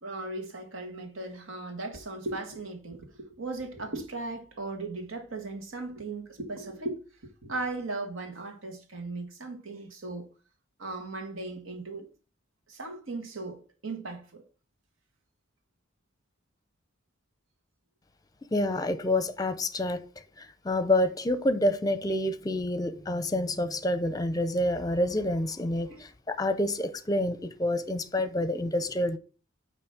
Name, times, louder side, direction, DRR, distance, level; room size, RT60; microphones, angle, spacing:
voice 1, 0.0-7.0 7.2-10.3 10.8-12.1 12.7-14.4 25.9-26.0, right 2 dB, 85° right, 1.7 m, -37 dB
voice 2, 18.5-20.0 20.6-29.2, left 1 dB, 20° left, 0.6 m, -28 dB
9.0 x 3.1 x 5.9 m
head